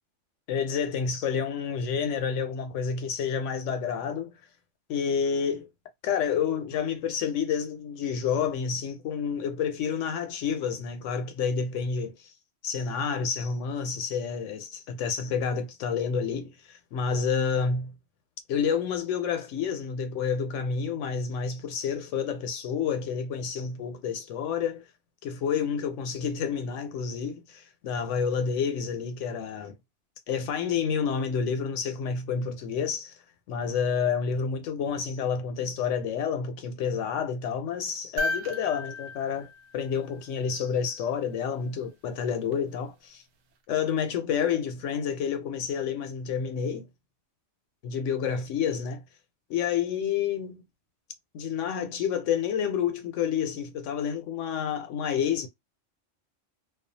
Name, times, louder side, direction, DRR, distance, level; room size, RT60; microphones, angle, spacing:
voice 1, 0.5-4.4 4.9-5.7 6.0-12.3 12.6-17.9 18.5-24.8 25.2-29.7 30.3-33.2 33.5-43.2 43.7-46.9 47.8-49.0 49.5-50.6 51.3-55.5, left 7 dB, 80° left, 0.9 m, -29 dB
sound 1, 38.2-40.5 42.5-42.6, left 2 dB, 75° right, 0.9 m, -34 dB
2.3 x 2.3 x 2.6 m
omnidirectional pair, 1.3 m